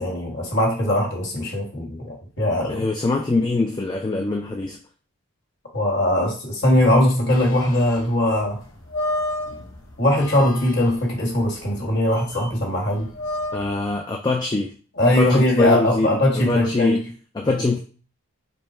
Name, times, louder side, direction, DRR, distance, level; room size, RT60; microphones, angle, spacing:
voice 1, 0.0-2.8 5.7-8.6 10.0-13.1 15.0-17.0 17.6-17.7, left 1 dB, 50° left, -1 dB, 1.6 m, -20 dB
voice 2, 2.7-4.8 13.5-14.7 15.2-17.0 17.4-17.8, left 3 dB, 20° left, 2 dB, 0.3 m, -23 dB
sound 1, 7.3-14.0, left 1 dB, 65° left, 1.0 m, -32 dB
5.3 x 2.2 x 4.3 m, 0.38 s
head